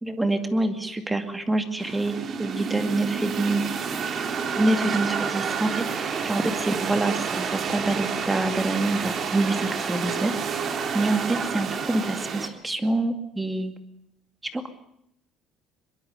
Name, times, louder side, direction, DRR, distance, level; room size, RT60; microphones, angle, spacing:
voice 1, 0.0-3.7 4.5-13.7 14.5-14.7, right 2 dB, 10° right, 8 dB, 2.3 m, -26 dB
sound 1, 1.8-12.5, right 6 dB, 40° right, 2.7 m, -29 dB
23.0 x 22.5 x 6.7 m, 0.77 s
cardioid pair, 155°, 0 cm